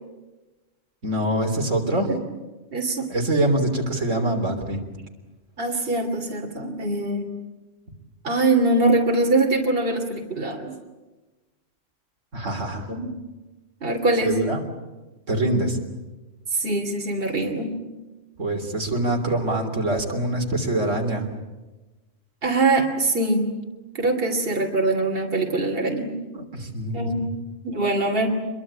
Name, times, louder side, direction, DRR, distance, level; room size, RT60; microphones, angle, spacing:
voice 1, 1.0-2.1 3.1-4.8 12.3-12.9 14.2-14.6 15.3-15.8 18.4-21.3 26.3-27.3, right 1 dB, 75° right, 3 dB, 3.8 m, -24 dB
voice 2, 2.7-3.1 5.6-7.3 8.2-10.7 12.9-13.2 13.8-14.4 16.5-17.8 22.4-23.5 23.9-26.2 26.9-27.3 27.6-28.3, right 2 dB, 45° right, 3 dB, 3.1 m, -23 dB
26.5 x 23.0 x 8.8 m, 1.1 s
omnidirectional pair, 1.3 m